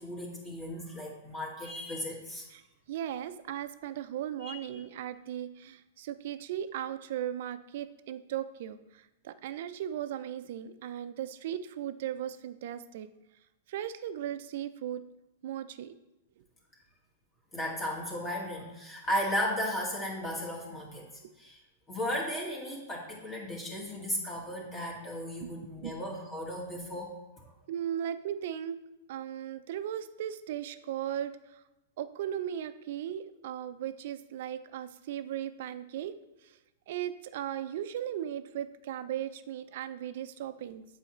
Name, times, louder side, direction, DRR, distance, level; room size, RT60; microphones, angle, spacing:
voice 1, 0.0-2.5 4.4-4.5 17.5-21.1 21.4-21.6 21.9-27.5, equal, 25° left, -3 dB, 1.8 m, -35 dB
voice 2, 2.9-13.1 13.7-15.0 15.4-16.0 21.2-21.3 25.4-25.5 25.8-25.9 27.7-28.8 29.1-31.6 32.0-36.2 36.4-36.5 36.9-40.8, right 10 dB, 60° right, 12 dB, 0.4 m, -37 dB
7.8 x 4.8 x 3.1 m, 0.97 s
hypercardioid pair, 105°, 0 cm